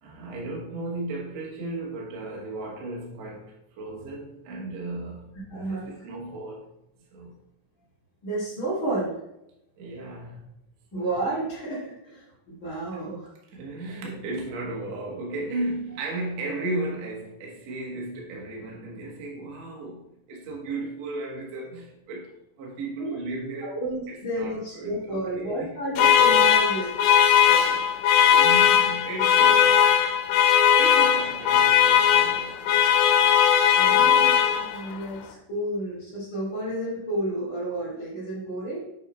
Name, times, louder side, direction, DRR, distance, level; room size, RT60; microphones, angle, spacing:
voice 1, 0.0-5.3 5.6-6.7 7.1-7.4 9.8-10.5 10.9-11.0 13.5-22.3 22.6-23.8 24.1-25.7 27.6-27.9 28.3-30.0 30.7-32.9 33.8-34.3, right 2 dB, 55° right, 2.0 m, -35 dB
voice 2, 5.5-5.9 8.2-9.1 10.9-13.3 23.0-23.2 23.6-26.9 33.7-38.8, right 1 dB, 35° left, 2.3 m, -31 dB
sound 1, 26.0-35.0, left 9 dB, 90° left, 3.1 m, -19 dB
8.3 x 4.7 x 4.4 m
omnidirectional pair, 5.0 m